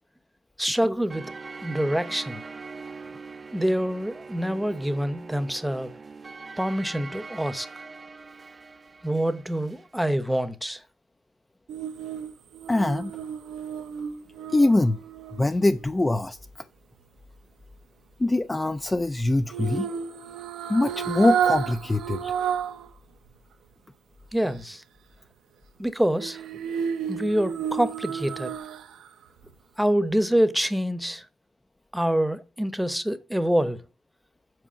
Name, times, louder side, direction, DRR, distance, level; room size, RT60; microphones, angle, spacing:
voice 1, 0.6-1.3 1.6-2.4 3.5-5.9 6.6-7.7 9.0-10.8 24.3-24.8 25.8-26.4 27.1-28.5 29.8-31.2 31.9-33.8, equal, 5° right, 0.9 m, -26 dB
sound 1, 1.1-9.9, right 4 dB, 30° right, 0.6 m, -42 dB
sound 2, 11.7-15.9 19.5-22.9 23.3-23.4 26.2-29.1 29.4-29.5, right 8 dB, 75° right, 0.9 m, -31 dB
voice 2, 12.7-13.1 14.5-15.0 15.4-16.4 18.2-19.9 20.7-22.3, left 2 dB, 15° left, 0.5 m, -23 dB
7.7 x 4.6 x 6.9 m
cardioid pair, 90°, 0 cm